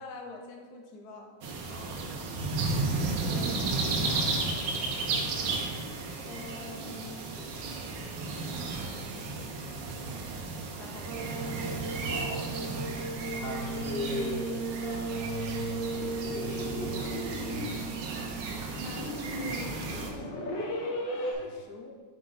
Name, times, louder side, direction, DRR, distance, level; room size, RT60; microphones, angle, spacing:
voice 1, 0.0-1.3 2.9-4.4 6.2-7.3 10.7-11.1 18.8-20.5 21.3-21.9, left 3 dB, 65° left, 2 dB, 1.3 m, -46 dB
sound 1, 1.4-20.1, right 3 dB, 80° right, 1.6 m, -34 dB
voice 2, 1.7-2.0 12.0-12.5 13.3-18.0 21.1-21.5, left 3 dB, 45° left, -1 dB, 0.9 m, -39 dB
sound 2, 11.1-18.9, right 4 dB, 60° right, 0.8 m, -37 dB
sound 3, 15.9-21.3, equal, 90° left, 1.8 m, -37 dB
7.6 x 5.5 x 4.0 m, 1.5 s
omnidirectional pair, 1.9 m